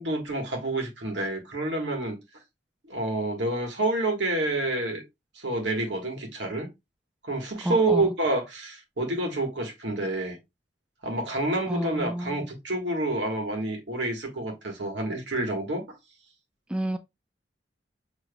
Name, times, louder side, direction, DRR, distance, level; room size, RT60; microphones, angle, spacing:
voice 1, 0.0-2.2 2.9-5.0 5.3-6.7 7.3-10.4 11.0-15.8, right 2 dB, 85° right, 1.5 m, -28 dB
voice 2, 7.6-8.1 11.7-12.5 16.7-17.0, right 1 dB, 5° right, 0.3 m, -30 dB
6.6 x 3.0 x 2.3 m
head